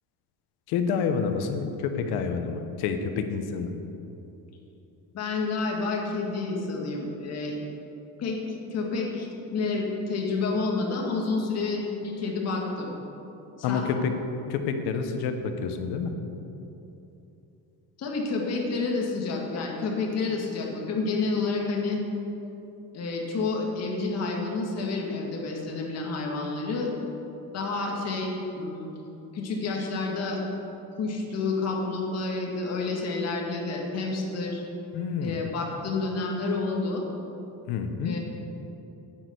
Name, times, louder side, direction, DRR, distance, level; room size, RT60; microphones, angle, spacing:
voice 1, 0.7-3.7 13.6-14.1 14.5-16.1 34.9-35.4 37.7-38.2, left 6 dB, 80° left, 7 dB, 1.1 m, -28 dB
voice 2, 5.1-7.6 8.2-8.4 8.7-12.9 13.7-13.9 18.0-22.0 22.9-26.9 27.5-28.9 29.3-30.4 31.0-34.6 35.2-37.1 38.0-38.2, left 3 dB, 40° left, -1 dB, 2.0 m, -29 dB
9.7 x 6.4 x 8.1 m, 2.9 s
cardioid pair, 155°, 38 cm